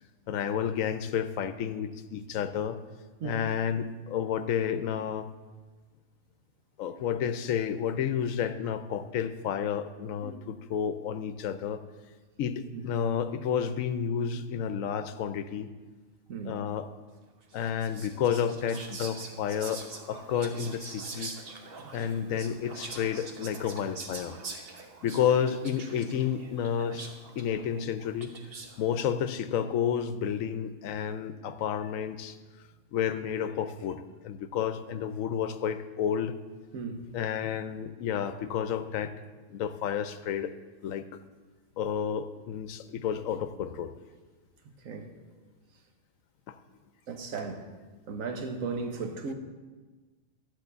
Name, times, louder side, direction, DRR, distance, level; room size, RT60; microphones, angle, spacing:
voice 1, 0.3-2.8 3.2-5.3 6.8-11.8 12.4-15.7 16.4-16.9 17.5-19.8 20.1-21.3 21.9-24.4 25.0-27.1 27.4-28.3 28.8-32.4 32.9-36.3 37.1-39.1 39.5-40.5 40.8-41.0 41.8-43.9 46.5-46.6, left 8 dB, 75° left, 1.0 m, -31 dB
voice 2, 16.3-16.6 36.7-37.0 44.8-45.1 47.1-47.7 48.1-49.3, right 4 dB, 75° right, 1.4 m, -35 dB
Whispering, 17.5-28.8, right 3 dB, 50° right, 1.1 m, -44 dB
12.0 x 4.5 x 8.0 m
omnidirectional pair, 1.4 m